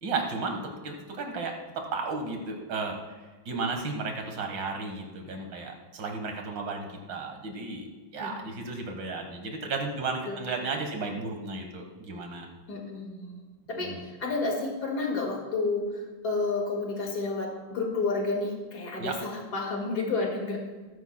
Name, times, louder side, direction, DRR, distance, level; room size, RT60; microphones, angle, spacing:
voice 1, 0.0-3.2 3.5-7.9 8.1-12.5 13.8-14.0 19.0-19.2, right 3 dB, 65° right, 3 dB, 2.2 m, -34 dB
voice 2, 12.7-13.4 13.7-15.9 16.2-20.6, left 3 dB, 55° left, 0 dB, 2.5 m, -30 dB
20.0 x 9.8 x 2.2 m, 1.3 s
omnidirectional pair, 2.2 m